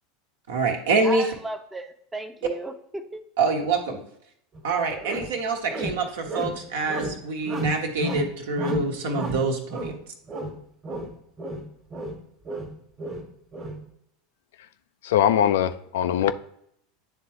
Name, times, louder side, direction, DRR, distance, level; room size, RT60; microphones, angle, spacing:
voice 1, 0.5-1.3 3.4-4.0 4.6-9.9, right 3 dB, 65° right, 1.1 m, -25 dB
voice 2, 1.0-3.2, right 2 dB, 10° right, 0.7 m, -35 dB
sound 1, 4.5-4.6 5.0-5.3 5.7-6.6 6.9-7.2 7.4-8.3 8.6-10.0 10.3-10.6 10.8-12.2 12.4-13.8, right 1 dB, 30° right, 1.3 m, -32 dB
voice 3, 15.0-16.3, left 10 dB, 65° left, 0.3 m, -21 dB
10.0 x 3.6 x 3.0 m
figure-of-eight pair, 80°, 0 cm